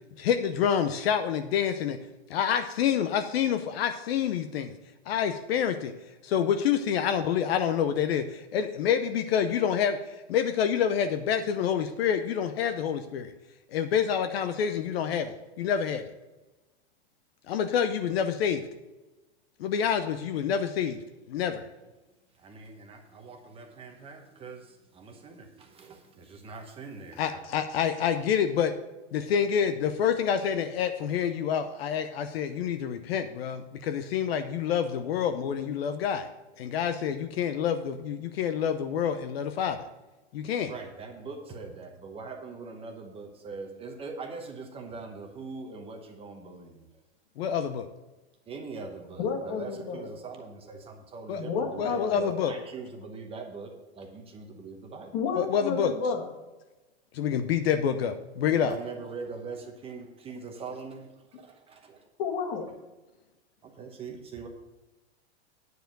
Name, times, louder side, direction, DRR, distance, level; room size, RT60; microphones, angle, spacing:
voice 1, 0.2-2.0 2.3-4.7 5.1-5.9 6.2-10.0 10.3-13.3 13.7-16.1 17.5-18.6 19.6-21.0 21.3-21.7 27.2-28.7 29.1-36.3 36.6-39.8 40.3-40.7 47.4-47.9 51.3-51.4 51.8-52.5 55.4-55.9 57.1-58.7, left 8 dB, 65° left, 9 dB, 0.7 m, -27 dB
voice 2, 22.3-27.5 40.7-46.8 48.5-55.2 58.5-62.0 62.7-62.8 63.6-64.5, right 4 dB, 15° right, 3 dB, 0.9 m, -42 dB
voice 3, 49.2-50.1 51.4-52.4 55.1-56.3 62.2-62.7, left 5 dB, 45° left, 4 dB, 1.8 m, -31 dB
9.3 x 4.9 x 7.7 m, 1.1 s
supercardioid pair, 145°, 33 cm